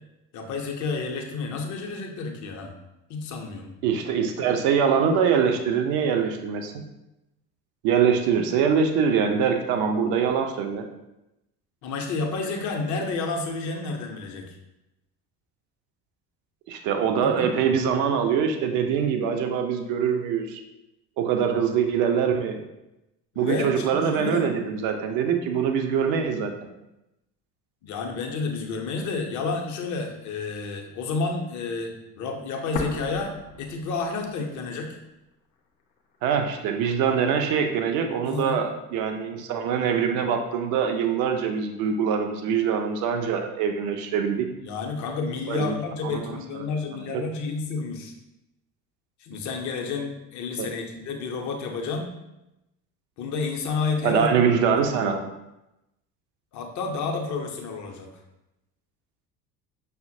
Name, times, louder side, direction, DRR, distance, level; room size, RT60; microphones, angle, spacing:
voice 1, 0.3-2.7 3.1-3.7 11.8-14.6 17.2-17.7 23.4-24.5 27.8-35.0 38.2-38.6 44.6-48.1 49.2-52.1 53.2-54.3 54.8-54.9 56.5-58.1, left 4 dB, 35° left, 3 dB, 0.6 m, -30 dB
voice 2, 3.8-6.8 7.8-10.8 16.7-20.6 21.2-22.6 23.4-26.5 36.2-44.5 45.5-45.8 46.0-46.4 47.1-47.2 50.6-50.7 54.0-55.2, right 7 dB, 40° right, 5 dB, 0.4 m, -23 dB
sound 1, 32.8-34.7 35.0-35.1 35.8-36.8, left 4 dB, 80° left, 0.6 m, -36 dB
5.5 x 2.1 x 2.6 m, 0.93 s
figure-of-eight pair, 60°, 50 cm